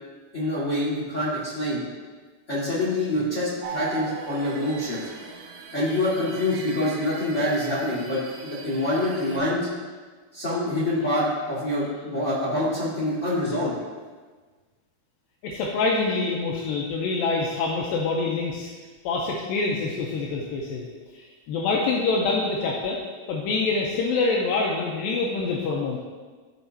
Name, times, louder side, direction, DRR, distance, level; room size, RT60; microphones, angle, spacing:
voice 1, 0.3-1.8 2.5-5.1 5.7-9.7 10.3-13.7, left 1 dB, 50° left, -9 dB, 0.8 m, -26 dB
sound 1, 3.6-9.4, right 5 dB, 85° right, 2.9 m, -39 dB
voice 2, 15.4-18.7 19.1-20.9 21.1-23.0 23.3-26.0, left 3 dB, 80° left, -2 dB, 2.2 m, -26 dB
14.0 x 4.7 x 2.8 m, 1.4 s
omnidirectional pair, 4.6 m